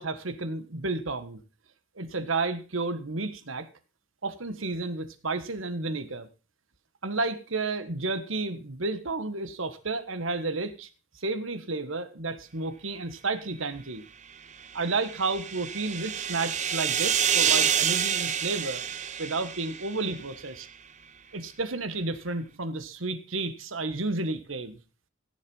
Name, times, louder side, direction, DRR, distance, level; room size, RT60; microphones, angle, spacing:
voice 1, 0.0-1.4 2.0-3.7 4.2-6.3 7.0-10.9 11.1-14.0 14.7-18.8 19.2-20.7 21.3-24.8, right 3 dB, 80° right, 12 dB, 1.4 m, -31 dB
sound 1, 14.6-20.2, right 8 dB, 35° right, 0.8 m, -28 dB
16.0 x 7.5 x 5.4 m, 0.34 s
head